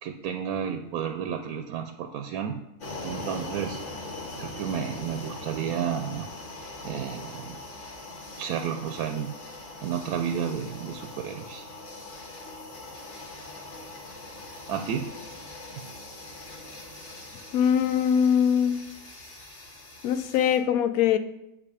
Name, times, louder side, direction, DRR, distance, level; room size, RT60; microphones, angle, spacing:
voice 1, 0.0-2.6 3.0-3.8 4.4-6.3 6.8-7.6 8.4-9.5 9.8-11.6 14.7-15.0, right 8 dB, 90° right, 6 dB, 1.1 m, -31 dB
sound 1, 2.8-20.6, left 2 dB, 55° left, 1.6 m, -41 dB
voice 2, 17.5-18.8 20.0-21.2, left 8 dB, 80° left, 11 dB, 1.1 m, -22 dB
7.6 x 4.9 x 4.9 m, 0.86 s
omnidirectional pair, 1.5 m